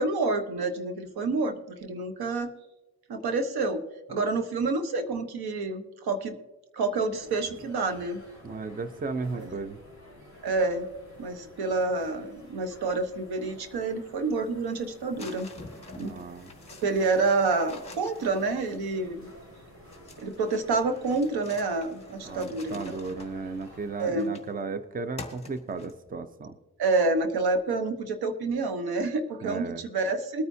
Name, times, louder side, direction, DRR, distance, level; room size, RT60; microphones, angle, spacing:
voice 1, 0.0-1.6 1.8-2.5 3.1-3.8 4.1-6.4 6.7-8.2 9.4-9.5 10.4-10.9 11.2-15.5 15.9-16.2 16.8-19.3 20.2-22.8 24.0-24.3 26.8-30.4, right 3 dB, 85° right, 8 dB, 1.2 m, -28 dB
sound 1, 7.1-24.1, equal, 50° right, 4.1 m, -51 dB
voice 2, 8.4-9.8 16.0-16.5 22.2-26.5 29.4-29.8, right 4 dB, 25° right, 11 dB, 0.6 m, -35 dB
sound 2, 15.2-19.1 19.9-24.6 25.2-26.2, left 3 dB, 15° left, 1.7 m, -47 dB
21.5 x 9.3 x 2.8 m, 1.1 s
cardioid pair, 115°, 37 cm